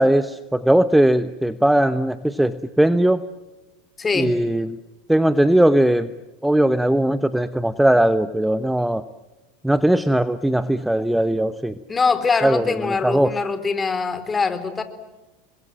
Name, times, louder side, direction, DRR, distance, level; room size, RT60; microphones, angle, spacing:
voice 1, 0.0-3.2 4.1-4.8 5.1-6.1 6.4-9.0 9.6-11.8 12.4-13.3, right 1 dB, 5° right, 13 dB, 1.0 m, -19 dB
voice 2, 4.0-4.3 11.9-14.8, left 4 dB, 20° left, 10 dB, 3.9 m, -23 dB
30.0 x 22.0 x 7.6 m, 1.1 s
hypercardioid pair, 95°, 0 cm